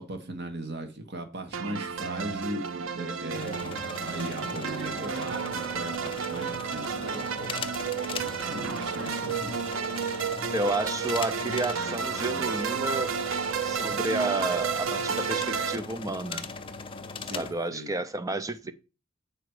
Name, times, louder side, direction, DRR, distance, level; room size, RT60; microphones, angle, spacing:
voice 1, 0.0-7.7 8.1-9.6 17.3-17.9 18.3-18.7, right 1 dB, 55° right, 1.6 m, -38 dB
sound 1, 1.5-15.8, right 6 dB, 85° right, 0.6 m, -32 dB
sound 2, 3.3-17.5, left 4 dB, 25° left, 0.6 m, -40 dB
voice 2, 10.5-13.1 13.6-16.4 17.3-18.7, right 2 dB, 15° right, 0.5 m, -31 dB
7.7 x 5.0 x 4.8 m
head